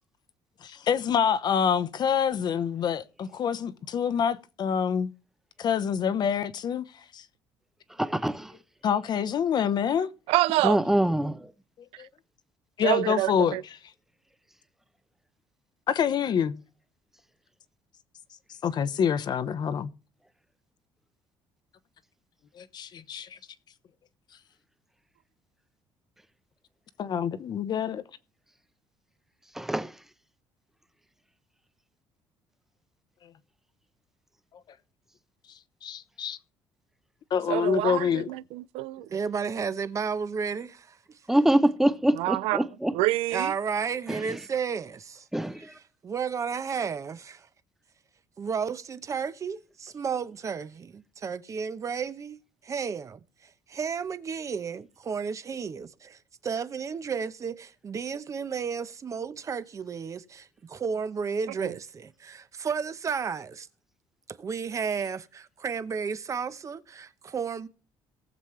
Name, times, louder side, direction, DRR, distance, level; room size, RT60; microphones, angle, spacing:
voice 1, 0.6-5.1 5.6-6.9 7.1-7.2 8.8-10.1 12.0-12.1 12.8-13.6 15.9-16.6 18.6-19.9 22.6-23.4 27.0-28.0 35.8-36.4 37.3-38.3, left 7 dB, 50° left, 0.9 m, -26 dB
voice 2, 8.0-8.5 10.6-11.5 29.6-29.9 41.3-42.9 44.1-44.2 45.3-45.6, right 1 dB, 5° right, 0.8 m, -24 dB
voice 3, 10.3-10.8 12.0-12.1 12.8-13.6 37.5-39.1 42.1-42.6 42.9-43.5 61.6-61.7, right 17 dB, 90° right, 0.4 m, -27 dB
voice 4, 39.0-41.2 43.3-45.3 45.6-47.5 48.4-52.4 52.6-53.2 53.7-63.7 64.3-67.7, right 6 dB, 35° right, 0.9 m, -33 dB
19.0 x 7.3 x 3.2 m
cardioid pair, 120°, 10 cm